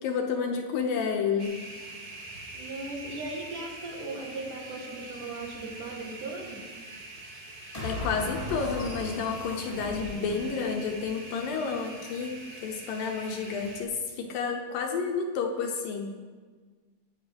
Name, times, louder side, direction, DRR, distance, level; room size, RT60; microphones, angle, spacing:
voice 1, 0.0-1.6 7.8-16.1, left 5 dB, 70° left, 3 dB, 2.5 m, -30 dB
sound 1, 1.4-13.8, right 2 dB, 90° right, 0.8 m, -44 dB
voice 2, 2.5-6.6, right 2 dB, 60° right, 0 dB, 3.1 m, -38 dB
sound 2, 7.7-11.1, left 2 dB, 15° left, 2.0 m, -38 dB
19.0 x 8.3 x 5.2 m, 1.5 s
omnidirectional pair, 4.5 m